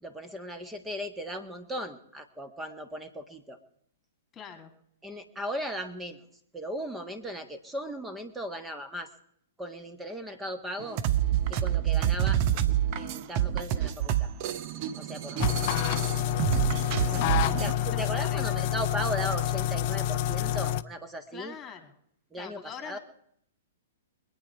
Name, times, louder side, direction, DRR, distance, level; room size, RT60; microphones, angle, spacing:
voice 1, 0.0-3.6 5.0-6.2 6.5-9.1 9.6-11.0 11.5-12.4 13.0-14.3 15.0-15.5 17.1-21.6 22.3-23.0, equal, 10° right, 8 dB, 1.7 m, -37 dB
voice 2, 4.3-4.7 12.0-12.1 15.3-15.5 17.0-18.6 21.3-21.9 22.4-23.0, left 7 dB, 20° left, 6 dB, 2.7 m, -44 dB
sound 1, 10.8-17.7, right 11 dB, 35° right, 0.9 m, -27 dB
sound 2, 15.4-20.8, left 12 dB, 40° left, 0.6 m, -28 dB
24.5 x 9.2 x 4.8 m, 0.70 s
figure-of-eight pair, 110°, 0 cm